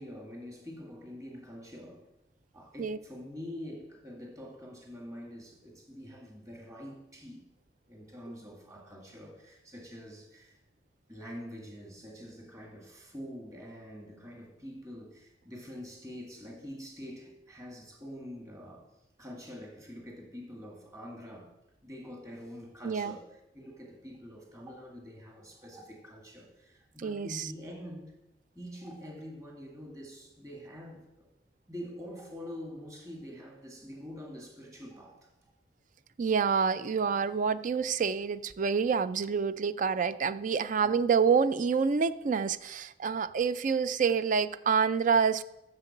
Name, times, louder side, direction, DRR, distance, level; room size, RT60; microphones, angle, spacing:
voice 1, 0.0-2.1 2.5-7.5 7.9-10.6 11.1-18.9 19.2-21.5 21.8-28.1 28.6-31.3 31.7-35.5 40.8-40.9, equal, 20° right, -1 dB, 2.0 m, -45 dB
voice 2, 22.8-23.1 27.0-27.5 36.2-45.4, right 6 dB, 45° right, 15 dB, 0.4 m, -27 dB
7.6 x 6.7 x 7.2 m, 0.91 s
head